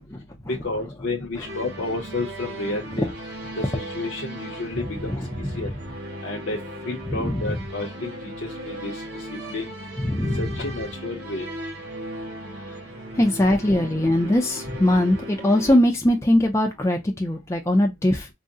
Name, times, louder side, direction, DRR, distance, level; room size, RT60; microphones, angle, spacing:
voice 1, 0.5-3.1 3.6-5.7 6.2-6.6 6.8-8.1 8.4-9.0 9.5-9.6 10.4-11.5, left 2 dB, 55° left, 0.6 m, -31 dB
sound 1, 1.4-15.8, right 1 dB, 60° right, 1.3 m, -37 dB
voice 2, 5.1-5.7 7.1-7.5 10.0-10.6 13.2-18.3, left 1 dB, 15° left, 0.4 m, -21 dB
3.5 x 2.0 x 2.6 m
head